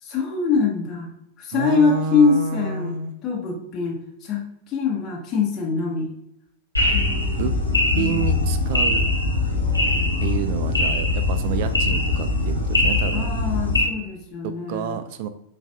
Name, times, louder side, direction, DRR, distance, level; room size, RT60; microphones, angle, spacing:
voice 1, 0.0-1.1 1.4-3.0 3.2-4.0 4.2-6.1 6.9-8.2 13.1-15.0, left 5 dB, 30° left, -1 dB, 0.8 m, -24 dB
voice 2, 1.5-3.1 7.4-7.5 8.0-9.0 10.2-13.3 14.4-15.3, right 6 dB, 50° right, 10 dB, 0.3 m, -29 dB
sound 1, 6.8-13.8, left 2 dB, 85° left, 1.0 m, -21 dB
7.0 x 2.5 x 2.2 m, 0.77 s
figure-of-eight pair, 90°, 0 cm